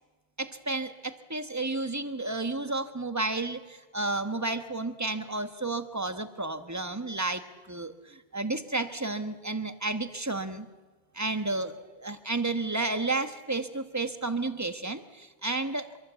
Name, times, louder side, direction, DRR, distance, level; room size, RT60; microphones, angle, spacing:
voice 1, 0.4-10.7 11.1-15.9, right 2 dB, 15° right, 9 dB, 1.3 m, -32 dB
26.5 x 22.5 x 8.3 m, 1.3 s
omnidirectional pair, 1.1 m